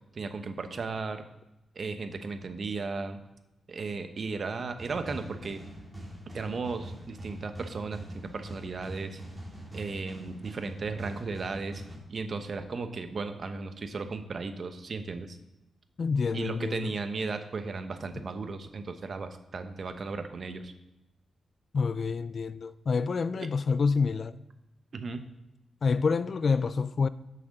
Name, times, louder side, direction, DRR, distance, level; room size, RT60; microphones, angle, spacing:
voice 1, 0.1-1.2 1.8-3.2 3.7-5.6 6.3-9.2 9.7-11.8 12.1-15.4 16.3-20.7 24.9-25.2, right 4 dB, 45° right, 0.8 m, -35 dB
sound 1, 4.8-12.0, equal, 15° right, 2.4 m, -44 dB
voice 2, 16.0-16.9 21.7-24.4 25.8-27.1, left 5 dB, 45° left, 0.3 m, -27 dB
7.7 x 6.0 x 6.5 m
cardioid pair, 110°, 0 cm